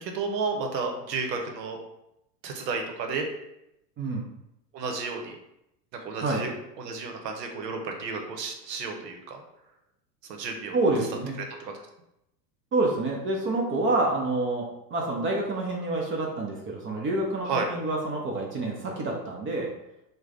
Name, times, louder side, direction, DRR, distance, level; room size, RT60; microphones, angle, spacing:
voice 1, 0.0-1.8 2.4-3.3 4.7-5.3 5.9-6.5 6.8-9.4 10.4-10.8 11.6-11.7 17.5-17.7, right 4 dB, 80° right, 4 dB, 0.8 m, -32 dB
voice 2, 10.7-11.4 12.7-19.7, right 2 dB, 25° right, -1 dB, 0.6 m, -27 dB
3.2 x 2.1 x 3.7 m, 0.85 s
hypercardioid pair, 105°, 49 cm